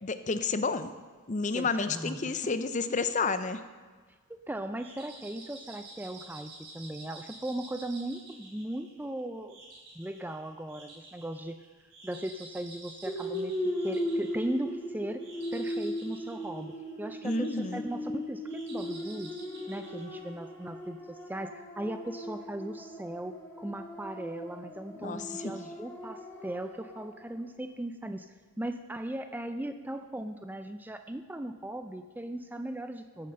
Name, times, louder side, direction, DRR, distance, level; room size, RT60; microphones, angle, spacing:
voice 1, 0.0-0.9 1.3-3.6 17.2-17.8 25.0-25.5, left 4 dB, 35° left, 11 dB, 0.6 m, -30 dB
voice 2, 1.5-2.3 4.3-9.6 10.0-11.6 12.0-15.2 15.5-19.3 19.7-33.3, right 1 dB, 10° right, 8 dB, 0.4 m, -38 dB
sound 1, 4.8-20.9, right 2 dB, 55° right, 4.3 m, -50 dB
sound 2, 13.1-27.3, equal, 10° left, 1.8 m, -38 dB
13.5 x 7.5 x 6.5 m, 1.5 s
head